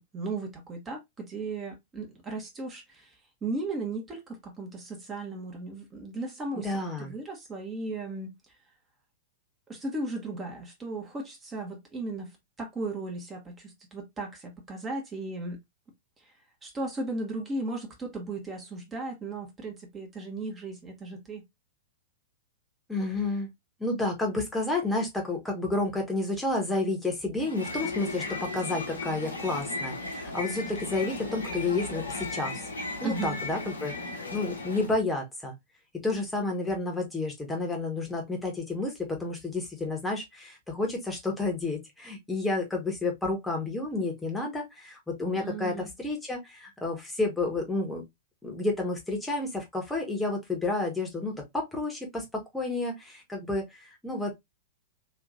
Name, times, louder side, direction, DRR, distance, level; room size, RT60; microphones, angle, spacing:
voice 1, 0.0-3.1 3.4-8.3 9.7-15.6 16.6-21.4 33.0-33.4 45.3-45.9, right 2 dB, 20° right, 1.3 m, -36 dB
voice 2, 6.5-7.1 22.9-23.5 23.8-32.6 33.0-35.5 36.0-48.0 48.4-54.4, left 2 dB, 5° left, 1.3 m, -30 dB
sound 1, 27.4-35.0, left 3 dB, 80° left, 0.9 m, -36 dB
3.2 x 2.9 x 2.5 m
figure-of-eight pair, 100°, 0 cm